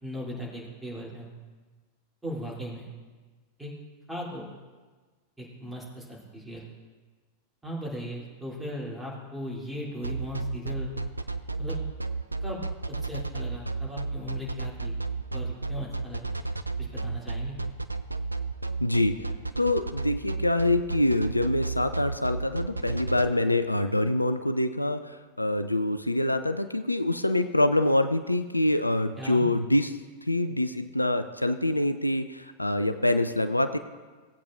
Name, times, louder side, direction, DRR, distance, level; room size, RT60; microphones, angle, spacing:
voice 1, 0.0-1.3 2.2-2.9 3.6-3.7 4.1-4.5 5.4-6.7 7.6-10.9 11.6-11.8 12.4-12.6 12.9-14.9 15.3-16.3 16.8-17.6 29.2-29.5, equal, 5° right, -6 dB, 3.0 m, -37 dB
sound 1, 10.0-23.2, right 3 dB, 85° right, 0.4 m, -32 dB
voice 2, 18.8-19.3 19.6-29.9 30.2-33.8, left 1 dB, 85° left, 10 dB, 0.4 m, -25 dB
17.5 x 8.4 x 2.5 m, 1.4 s
figure-of-eight pair, 90°, 0 cm